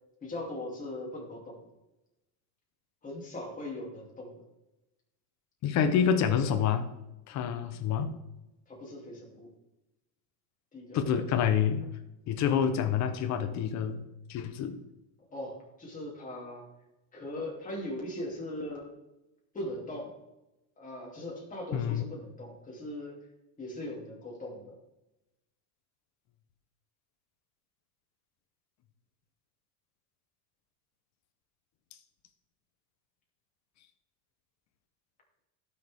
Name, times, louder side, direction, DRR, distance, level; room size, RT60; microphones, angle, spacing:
voice 1, 0.2-1.7 3.0-4.4 8.7-9.5 10.7-11.0 15.3-16.7 17.1-18.9 19.5-20.2 20.8-23.3 23.6-24.8, left 1 dB, 15° left, -3 dB, 3.1 m, -40 dB
voice 2, 5.6-6.9 7.3-8.1 10.9-11.8 12.3-14.0 14.3-14.8 21.7-22.0, left 8 dB, 35° left, 8 dB, 1.1 m, -27 dB
16.5 x 6.7 x 3.7 m, 0.97 s
supercardioid pair, 155°, 48 cm